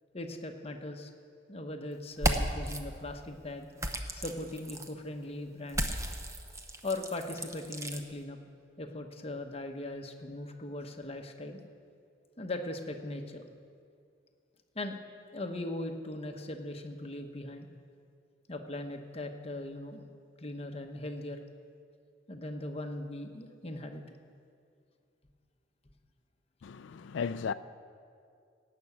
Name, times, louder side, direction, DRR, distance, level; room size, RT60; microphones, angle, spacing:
voice 1, 0.1-1.1 1.5-3.7 4.1-5.9 6.8-8.4 8.8-11.6 12.4-13.4 14.7-15.0 15.3-17.7 18.5-20.0 20.4-21.4 22.3-24.0, left 2 dB, 30° left, 0.9 m, -39 dB
sound 1, 2.1-2.8 3.8-4.9 5.7-8.0, right 1 dB, 15° right, 0.7 m, -34 dB
voice 2, 26.6-27.5, left 6 dB, 75° left, 0.4 m, -35 dB
17.5 x 6.0 x 8.4 m
head